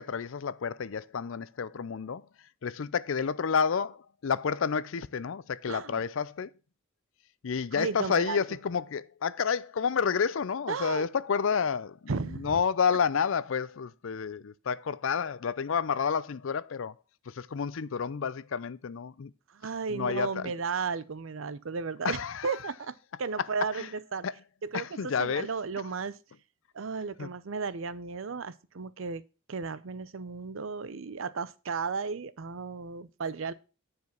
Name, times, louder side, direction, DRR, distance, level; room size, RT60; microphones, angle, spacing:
voice 1, 0.0-2.3 2.6-6.5 7.4-16.9 17.3-19.3 19.9-20.5 22.0-22.5 23.8-23.9 24.2-24.3 24.7-25.5 27.2-27.3, left 6 dB, 65° left, 0.5 m, -30 dB
voice 2, 5.7-6.0 7.7-8.4 10.7-11.1 12.1-12.6 19.5-24.3 24.6-26.2 26.7-29.2 29.5-33.5, right 5 dB, 65° right, 0.6 m, -34 dB
9.5 x 5.0 x 5.9 m
head